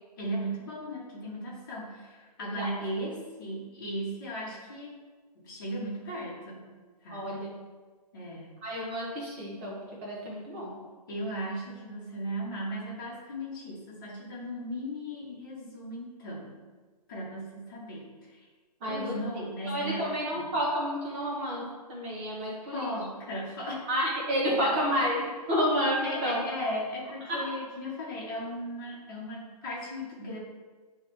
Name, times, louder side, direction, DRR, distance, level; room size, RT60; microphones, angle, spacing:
voice 1, 0.2-4.9 5.3-6.7 7.0-7.5 8.1-8.6 11.1-16.6 17.1-18.5 18.8-20.5 22.7-23.9 24.4-25.3 26.0-30.4, equal, 30° left, -5 dB, 1.5 m, -37 dB
voice 2, 2.4-2.7 7.1-7.5 8.6-10.8 18.8-19.1 19.6-22.9 23.9-26.4 27.3-27.4, equal, 15° right, -4 dB, 1.0 m, -30 dB
8.7 x 3.3 x 3.3 m, 1.4 s
hypercardioid pair, 170°, 21 cm